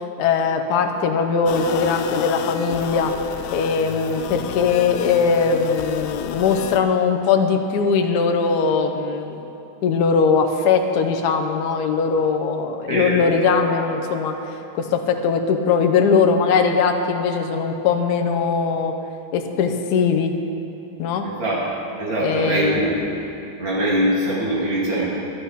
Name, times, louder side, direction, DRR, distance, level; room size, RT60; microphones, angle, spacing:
voice 1, 0.2-3.1 3.5-9.4 9.8-14.3 14.8-18.9 19.3-20.3 21.0-21.3 22.2-22.9, left 5 dB, 60° left, 4 dB, 1.2 m, -20 dB
sound 1, 1.5-6.8, left 9 dB, 85° left, 0.9 m, -31 dB
voice 2, 12.9-13.3 21.2-21.6 22.0-23.0 23.6-25.1, right 1 dB, 65° right, -6 dB, 3.5 m, -22 dB
11.5 x 11.0 x 5.7 m, 2.8 s
omnidirectional pair, 2.3 m